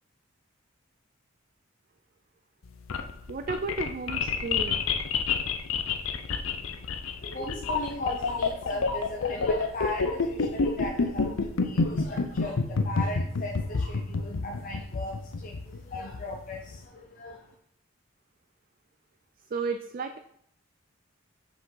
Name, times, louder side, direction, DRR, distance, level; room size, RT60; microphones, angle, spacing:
sound 1, 2.7-16.8, left 4 dB, 85° left, 0.6 m, -28 dB
voice 1, 3.3-4.8 19.5-20.2, right 4 dB, 45° right, 8 dB, 0.4 m, -33 dB
voice 2, 6.6-17.5, left 1 dB, 45° left, 0 dB, 0.6 m, -37 dB
6.0 x 5.0 x 3.9 m, 0.69 s
head